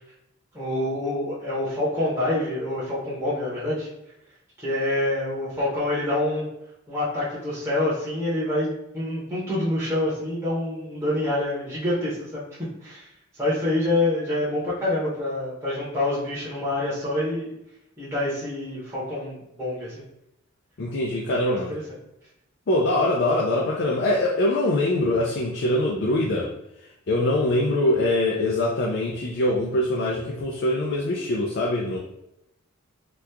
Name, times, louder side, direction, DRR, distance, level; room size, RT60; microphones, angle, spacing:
voice 1, 0.5-3.9 4.6-6.5 6.9-12.4 12.8-13.1 13.4-17.5 18.0-19.9 21.3-21.8, left 1 dB, 15° right, -10 dB, 1.0 m, -26 dB
voice 2, 20.8-21.7 22.7-26.5 27.1-32.0, left 1 dB, 55° left, -2 dB, 0.5 m, -23 dB
2.9 x 2.4 x 3.4 m, 0.84 s
head